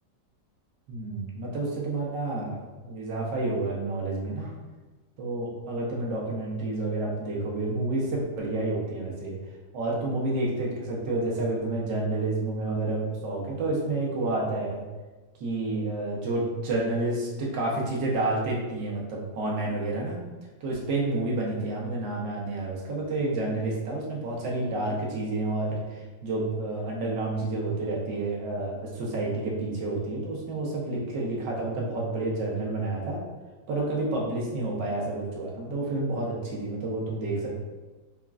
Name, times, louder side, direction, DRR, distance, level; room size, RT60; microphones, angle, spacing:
voice 1, 0.9-4.5 5.2-9.3 9.7-14.8 15.4-20.2 20.6-33.2 33.7-37.6, right 2 dB, 80° right, -3 dB, 1.5 m, -29 dB
5.2 x 2.3 x 2.4 m, 1.2 s
omnidirectional pair, 1.9 m